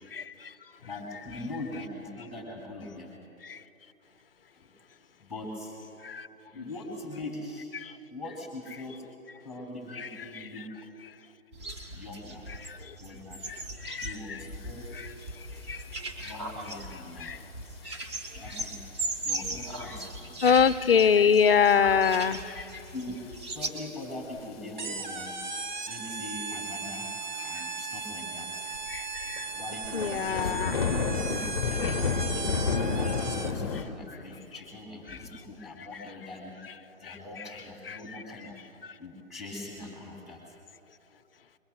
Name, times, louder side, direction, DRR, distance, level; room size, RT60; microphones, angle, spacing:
voice 1, 0.8-3.2 4.5-4.7 5.2-5.8 6.5-7.7 8.1-9.1 9.4-10.9 11.9-12.5 13.0-13.5 13.9-15.0 16.2-17.4 17.9-18.0 18.3-18.8 19.2-20.8 21.1-21.2 22.9-23.3 23.5-25.4 25.9-28.7 29.5-30.7 31.1-36.6 37.0-38.6 39.0-40.5, left 2 dB, ahead, 2.4 m, -42 dB
sound 1, 11.5-23.7, right 2 dB, 20° right, 1.1 m, -38 dB
voice 2, 13.5-14.1 15.7-15.8 16.2-16.3 17.2-17.4 20.4-22.4 27.6-27.7 28.9-29.5 29.9-30.8 31.8-31.9 35.1-35.2 37.9-38.0, left 7 dB, 45° left, 0.5 m, -24 dB
sound 2, 15.2-15.3 15.6-15.9 16.6-16.8 17.4-17.5 18.1-18.2 18.5-18.6 18.9-19.0 20.1-20.3 20.7-20.8 21.7-21.8 22.4-22.8 23.2-23.3 23.9-24.5 25.6-25.9 26.2-26.3 26.6-26.7 26.9-27.0 27.6-27.7 28.0-28.1 28.7-33.8, left 5 dB, 20° left, 0.8 m, -30 dB
sound 3, 24.8-33.7, right 4 dB, 35° right, 0.6 m, -37 dB
26.0 x 22.5 x 2.2 m
figure-of-eight pair, 150°, 41 cm